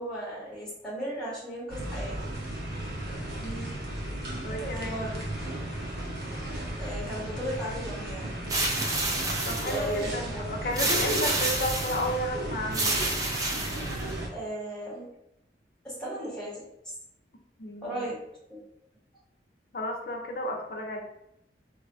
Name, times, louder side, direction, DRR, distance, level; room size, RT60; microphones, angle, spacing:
voice 1, 0.0-2.2 4.5-5.2 6.8-8.3 9.7-10.5 14.3-15.1 15.8-16.9 17.8-18.2 18.5-18.6, equal, 5° left, -7 dB, 0.9 m, -36 dB
sound 1, 1.7-14.3, right 1 dB, 65° right, 0.7 m, -35 dB
voice 2, 3.4-3.7 4.4-5.1 9.5-13.0 17.6-18.1 19.7-21.0, left 1 dB, 55° left, 2 dB, 0.5 m, -33 dB
sound 2, 8.5-10.0 10.8-12.1 12.7-14.2, right 2 dB, 20° right, 0.3 m, -29 dB
2.4 x 2.1 x 3.4 m, 0.80 s
head